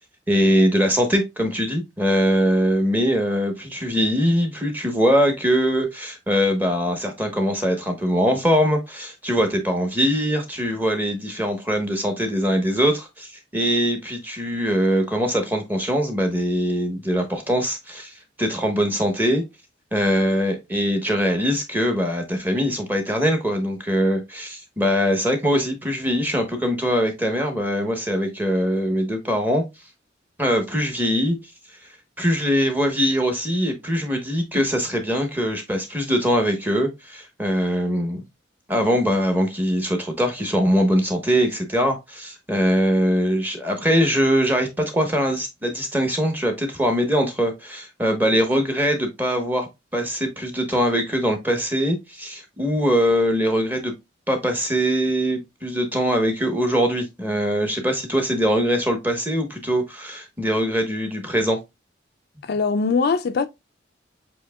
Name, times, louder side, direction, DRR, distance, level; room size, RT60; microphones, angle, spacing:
voice 1, 0.3-19.4 19.9-29.6 30.4-31.4 32.2-38.2 38.7-49.7 49.9-53.9 54.3-61.6, equal, 10° right, 1.0 m, -22 dB
voice 2, 62.4-63.5, left 4 dB, 55° left, 0.3 m, -21 dB
7.3 x 2.8 x 2.2 m
head